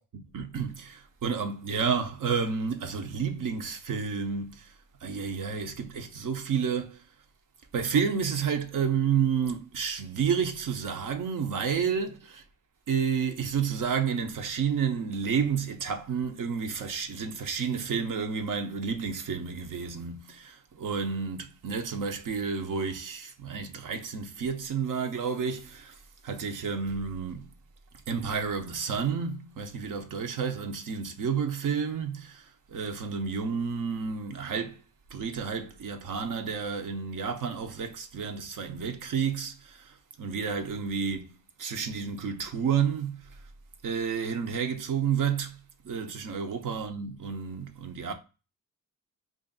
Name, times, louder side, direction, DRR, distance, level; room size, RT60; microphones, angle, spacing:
voice 1, 0.3-4.7 5.0-7.0 7.7-12.4 12.9-26.0 26.2-27.5 28.1-34.8 35.1-41.3 41.6-43.2 43.8-45.6 45.8-48.1, right 6 dB, 65° right, 0.7 m, -30 dB
3.3 x 2.6 x 3.9 m
cardioid pair, 100°, 34 cm